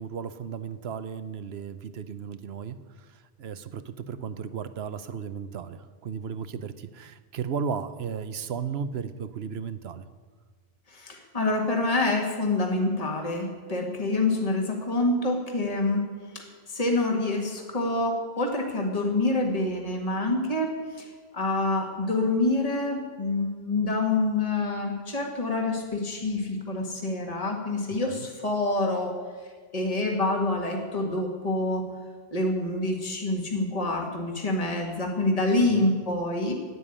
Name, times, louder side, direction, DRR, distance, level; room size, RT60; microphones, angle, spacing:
voice 1, 0.0-2.8 3.4-10.0 28.1-28.2 35.7-35.9, right 6 dB, 75° right, 12 dB, 1.0 m, -35 dB
voice 2, 10.9-16.1 16.3-21.1 21.3-29.1 29.7-31.9 32.3-36.5, left 2 dB, 35° left, 1 dB, 1.9 m, -27 dB
12.5 x 9.5 x 9.9 m, 1.5 s
omnidirectional pair, 1.1 m